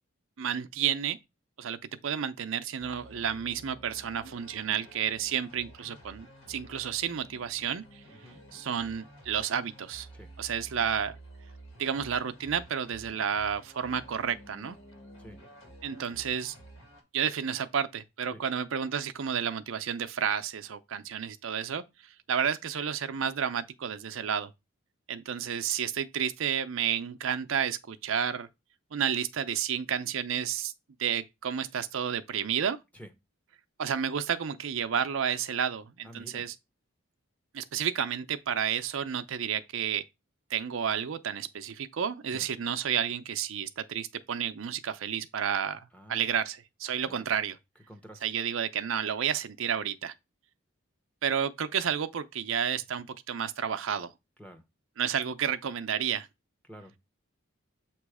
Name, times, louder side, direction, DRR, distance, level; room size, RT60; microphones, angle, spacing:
voice 1, 0.4-1.2 1.6-1.8 2.0-8.0 8.5-10.1 10.4-11.2 11.8-14.8 15.8-16.5 17.1-24.5 25.1-28.5 28.9-30.7 31.0-32.8 33.8-36.5 37.5-40.0 40.5-47.6 48.2-50.1 51.2-54.1 55.0-56.3, right 8 dB, 75° right, 0.5 m, -31 dB
sound 1, 2.8-17.0, right 1 dB, 75° left, 2.0 m, -51 dB
voice 2, 8.1-8.4 10.1-10.3 15.2-15.4 18.3-18.4 32.9-33.1 36.0-36.5 42.3-42.5 45.9-46.3 47.0-47.3 47.9-48.2 54.4-54.6 56.7-57.0, equal, 5° left, 0.8 m, -49 dB
7.3 x 3.0 x 4.8 m
head